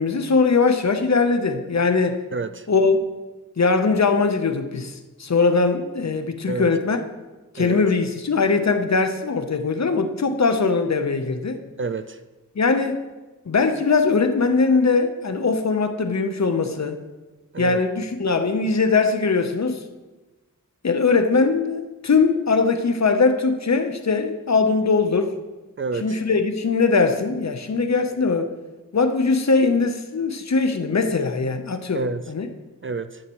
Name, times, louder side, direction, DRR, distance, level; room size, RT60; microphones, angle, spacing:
voice 1, 0.0-2.2 2.7-3.0 3.6-7.0 7.5-11.6 12.6-13.0 13.5-17.0 17.6-19.8 20.8-25.3 26.0-28.5 28.9-32.5, left 4 dB, 50° left, 7 dB, 0.8 m, -21 dB
voice 2, 2.3-2.7 6.5-6.7 7.6-7.8 11.8-12.2 17.5-17.8 25.8-26.2 31.9-32.2 32.8-33.2, right 4 dB, 35° right, 12 dB, 0.4 m, -28 dB
12.5 x 7.4 x 3.0 m, 1.2 s
cardioid pair, 50°, 34 cm